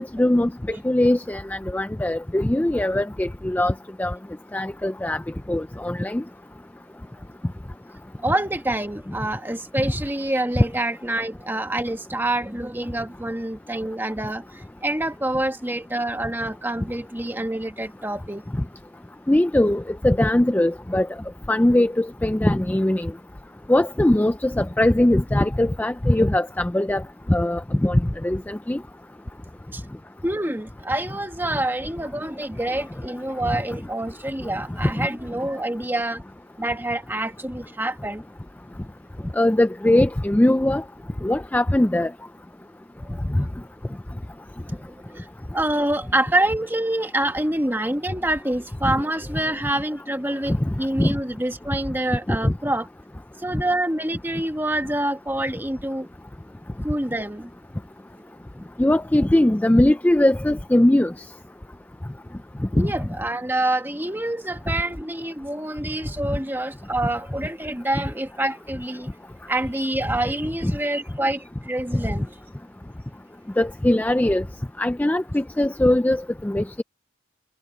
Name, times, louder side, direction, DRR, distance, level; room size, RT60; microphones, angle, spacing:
voice 1, 0.0-0.5 0.8-3.7 4.0-4.1 4.5-5.2 5.5-6.2 19.3-21.1 21.5-23.1 23.7-27.0 27.3-28.8 35.0-35.1 39.4-40.8 41.2-42.1 48.8-48.9 51.0-51.1 52.3-52.5 58.8-61.1 62.8-62.9 70.6-70.7 73.6-74.4 74.8-76.8, left 1 dB, 10° left, 0.3 m, -20 dB
voice 2, 8.2-18.4 29.7-29.8 30.2-36.2 36.6-38.2 43.0-43.2 44.7-45.3 45.5-52.9 53.4-56.1 56.8-57.5 62.7-69.1 69.5-72.3, right 1 dB, 10° right, 1.6 m, -26 dB
head